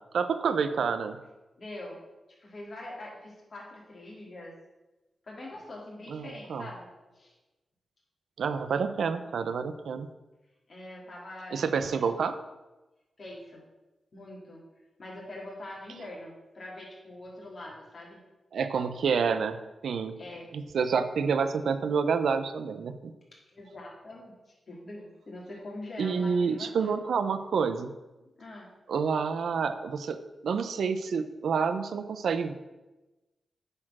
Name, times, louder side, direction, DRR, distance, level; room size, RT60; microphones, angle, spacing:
voice 1, 0.1-1.2 6.1-6.7 8.4-10.1 11.5-12.3 18.5-20.1 20.5-23.1 26.0-27.9 28.9-30.2 30.4-32.5, right 5 dB, 85° right, 10 dB, 0.5 m, -28 dB
voice 2, 1.6-2.0 2.4-4.5 5.2-6.9 7.1-7.3 10.7-12.1 13.2-13.6 14.1-14.6 15.0-18.2 20.2-20.5 23.5-27.0 28.2-28.7, left 1 dB, 45° left, -4 dB, 3.1 m, -44 dB
8.7 x 4.4 x 6.1 m, 1.1 s
wide cardioid pair, 90°, 0 cm